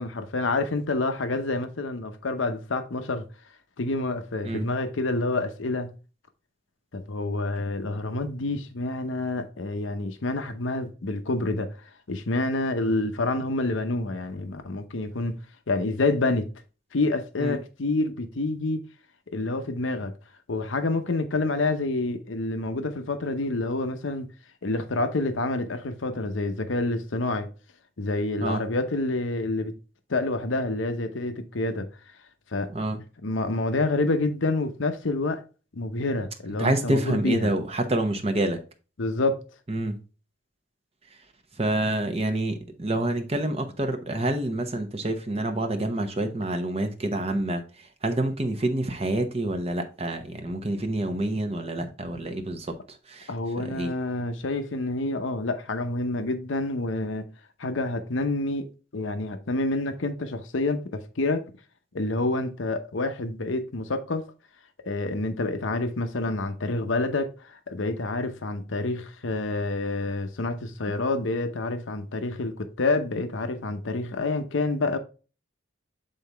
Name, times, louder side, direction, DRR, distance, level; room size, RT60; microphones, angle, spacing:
voice 1, 0.0-3.3 3.8-5.9 6.9-11.7 12.1-15.4 15.7-16.5 16.9-18.8 19.3-20.1 20.5-24.3 24.6-27.5 28.0-29.7 30.1-31.9 32.5-32.7 33.2-35.4 35.8-37.5 39.0-39.4 53.3-57.2 57.6-61.4 61.9-64.2 64.9-75.0, left 2 dB, 80° left, 0.8 m, -28 dB
voice 2, 32.7-33.0 36.6-38.6 39.7-40.0 41.6-53.3 53.6-53.9, right 1 dB, 30° right, 0.8 m, -27 dB
7.7 x 4.0 x 3.4 m
head